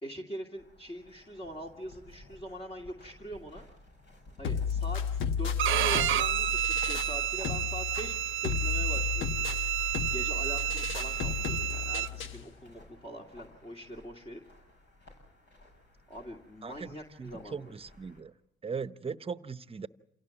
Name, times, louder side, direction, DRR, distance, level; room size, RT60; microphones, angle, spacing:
voice 1, 0.0-3.7 4.4-5.0 5.4-8.1 8.4-9.6 10.1-14.4 16.1-17.8, equal, 30° left, 0 dB, 2.4 m, -43 dB
Footsteps in the Snow, 0.6-18.2, left 1 dB, 65° left, 7.2 m, -55 dB
sound 1, 4.4-12.4, left 6 dB, 85° left, 1.2 m, -33 dB
Bowed string instrument, 5.6-12.1, right 12 dB, 80° right, 0.8 m, -30 dB
voice 2, 16.6-18.3 18.6-19.9, right 5 dB, 30° right, 13 dB, 0.9 m, -39 dB
28.0 x 17.5 x 7.2 m, 0.81 s
cardioid pair, 90°, 20 cm